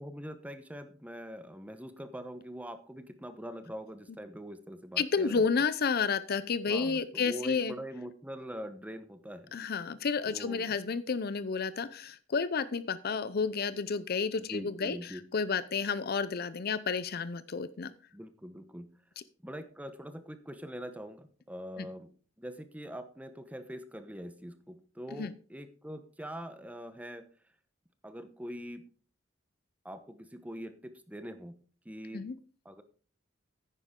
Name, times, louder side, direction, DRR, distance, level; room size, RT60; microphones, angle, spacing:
voice 1, 0.0-5.5 6.7-9.5 10.3-10.8 14.3-15.2 18.1-18.9 19.4-22.1 22.4-27.3 28.0-28.8 29.8-31.6 31.8-32.3 32.6-32.8, equal, 5° right, 10 dB, 0.9 m, -43 dB
voice 2, 5.0-7.7 9.5-17.9 21.8-21.9 25.2-25.3 32.1-32.3, left 5 dB, 50° left, 15 dB, 0.6 m, -31 dB
9.8 x 9.7 x 3.7 m, 0.41 s
head